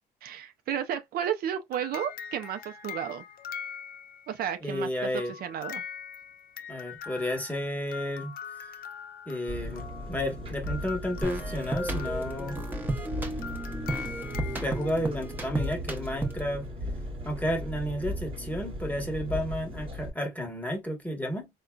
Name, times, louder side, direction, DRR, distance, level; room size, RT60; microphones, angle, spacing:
voice 1, 0.2-3.2 4.3-4.9 5.4-5.8, right 9 dB, 65° right, 0.5 m, -32 dB
sound 1, 1.7-4.4 5.2-15.0, left 7 dB, 55° left, 0.6 m, -42 dB
voice 2, 4.6-5.3 6.7-8.3 9.3-12.6 14.6-16.7 17.2-21.5, equal, 10° left, 1.1 m, -32 dB
Engine, 9.5-20.1, equal, 30° right, 1.2 m, -37 dB
sound 2, 11.2-16.6, right 2 dB, 10° right, 0.8 m, -34 dB
3.7 x 2.2 x 2.2 m
cardioid pair, 110°, 17 cm